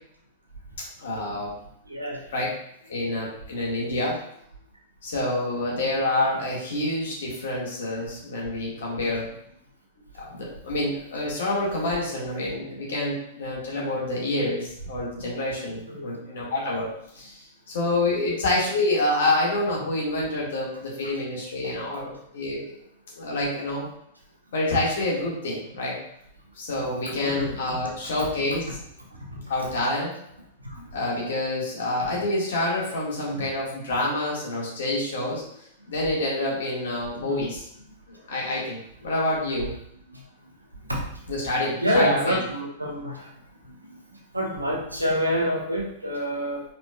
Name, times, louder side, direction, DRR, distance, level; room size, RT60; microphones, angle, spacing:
voice 1, 1.0-1.5 2.3-2.5 2.9-4.2 5.0-9.3 10.2-16.9 17.2-17.4 17.7-22.7 23.2-23.9 24.5-25.9 26.6-28.6 29.5-30.1 30.7-35.4 35.9-37.6 38.3-39.7 41.3-42.4, left 2 dB, 60° left, -4 dB, 1.8 m, -27 dB
voice 2, 1.9-2.2 2.9-3.1 15.2-15.3 15.9-16.1 21.0-21.2 21.6-21.7 27.2-27.6 29.1-29.4 30.6-30.8 33.3-33.4 37.2-37.4 40.1-40.2 40.7-41.2 41.8-43.3 43.6-46.6, equal, 85° right, -2 dB, 1.2 m, -28 dB
5.0 x 4.0 x 2.3 m, 0.71 s
figure-of-eight pair, 100°, 0 cm